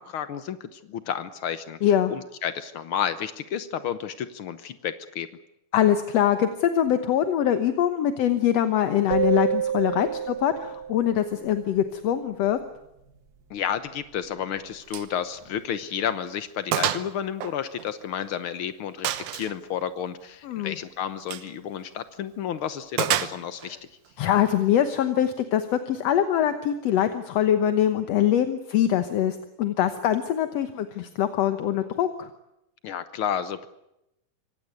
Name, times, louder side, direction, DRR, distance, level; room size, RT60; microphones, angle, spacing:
voice 1, 0.0-1.8 2.1-5.3 13.5-23.8 32.8-33.7, left 9 dB, 80° left, 12 dB, 1.1 m, -31 dB
voice 2, 1.8-2.1 5.7-12.6 20.4-20.8 24.2-32.3, left 10 dB, 60° left, 9 dB, 1.9 m, -23 dB
sound 1, 9.1-11.4, right 8 dB, 55° right, 1.1 m, -28 dB
Gunshot gunfire, 14.9-15.1 15.5-15.6 16.0-16.1 16.7-17.1 17.4-18.4 19.0-19.6 21.2-21.5 23.0-23.7, right 12 dB, 75° right, 2.4 m, -28 dB
25.5 x 17.5 x 9.4 m, 0.86 s
omnidirectional pair, 3.8 m